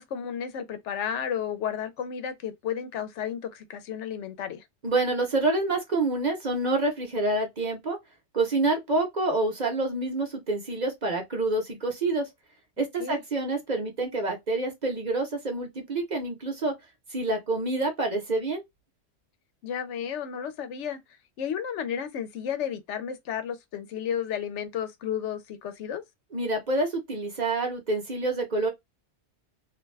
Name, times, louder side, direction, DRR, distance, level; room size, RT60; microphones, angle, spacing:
voice 1, 0.0-4.6 13.0-13.2 19.6-21.0 21.4-26.0, left 8 dB, 80° left, 0.9 m, -32 dB
voice 2, 4.8-8.0 8.3-12.3 12.8-16.8 17.1-18.6 26.3-28.7, right 2 dB, 45° right, 0.9 m, -27 dB
2.4 x 2.2 x 3.2 m
omnidirectional pair, 1.2 m